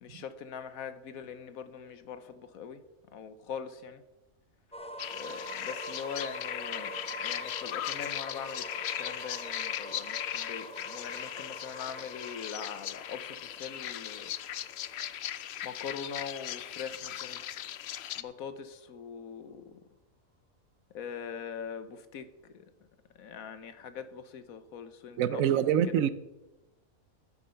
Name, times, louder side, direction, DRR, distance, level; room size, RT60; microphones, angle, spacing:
voice 1, 0.0-2.8 3.1-4.0 5.1-6.9 7.2-8.7 9.0-14.3 15.6-17.4 18.2-19.8 20.9-22.7 23.2-25.4, left 7 dB, 85° left, 1.4 m, -42 dB
sound 1, 4.7-16.5, equal, 5° left, 0.7 m, -45 dB
sound 2, 5.0-18.2, left 11 dB, 60° left, 0.7 m, -38 dB
voice 2, 25.2-26.1, right 9 dB, 75° right, 1.1 m, -25 dB
11.0 x 9.4 x 5.7 m
omnidirectional pair, 1.5 m